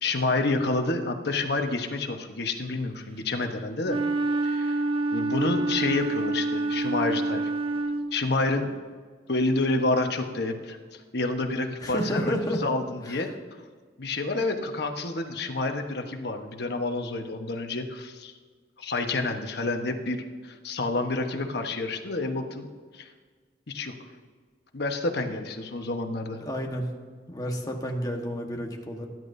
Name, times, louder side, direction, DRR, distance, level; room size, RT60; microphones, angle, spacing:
voice 1, 0.0-4.0 4.4-4.7 5.1-7.5 8.1-8.7 9.3-12.3 12.6-13.3 14.0-18.3 18.8-22.7 22.9-23.1 23.7-23.9 24.7-26.4, left 2 dB, 65° left, 5 dB, 1.2 m, -29 dB
Wind instrument woodwind instrument, 3.8-8.3, right 2 dB, 30° right, 0.6 m, -27 dB
voice 2, 11.8-12.6 13.0-13.2 26.4-26.9 27.3-29.1, equal, 20° left, 1 dB, 1.4 m, -30 dB
20.0 x 11.0 x 2.7 m, 1.5 s
head